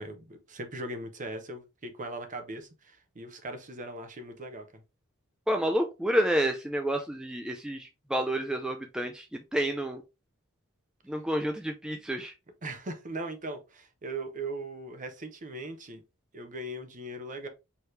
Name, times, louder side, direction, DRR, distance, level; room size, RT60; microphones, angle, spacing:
voice 1, 0.0-4.8 12.6-16.0 16.3-17.5, right 2 dB, 35° right, 0.8 m, -39 dB
voice 2, 5.5-9.2 9.5-10.0 11.1-12.3, equal, 5° right, 0.4 m, -29 dB
4.7 x 3.1 x 3.2 m
head